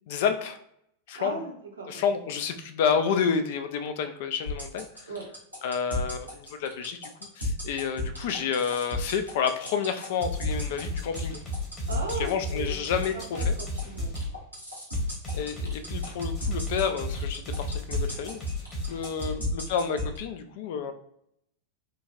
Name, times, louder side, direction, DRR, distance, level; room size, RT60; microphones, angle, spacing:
voice 1, 0.1-0.6 1.1-1.4 1.9-4.9 5.6-7.1 7.4-11.4 12.2-13.5 15.3-18.4 18.9-20.9, left 6 dB, 50° left, 9 dB, 0.4 m, -29 dB
voice 2, 1.1-2.0 5.1-5.3 11.9-12.8 13.1-14.2 19.2-19.4, right 3 dB, 75° right, 1 dB, 0.7 m, -37 dB
sound 1, 4.5-20.2, left 3 dB, 90° left, 1.1 m, -32 dB
sound 2, 10.2-14.3 14.9-19.3, left 1 dB, 25° left, 1.1 m, -34 dB
3.8 x 2.2 x 2.5 m, 0.72 s
figure-of-eight pair, 90°, 0 cm